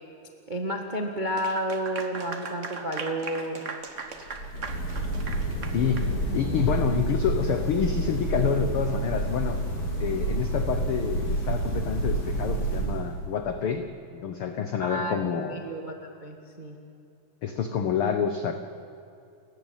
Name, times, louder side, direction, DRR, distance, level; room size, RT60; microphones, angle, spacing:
voice 1, 0.5-3.7 14.8-15.2 15.5-16.8, right 1 dB, 35° right, 3 dB, 0.7 m, -31 dB
Clapping / Applause, 1.3-6.1, right 4 dB, 80° right, 0.6 m, -38 dB
sound 1, 4.2-13.4, right 2 dB, 40° left, 6.6 m, -29 dB
voice 2, 5.7-9.6 10.0-13.8 14.1-15.6 17.4-18.5, left 7 dB, 75° left, 7 dB, 1.2 m, -28 dB
29.5 x 15.0 x 9.1 m, 2.6 s
omnidirectional pair, 3.9 m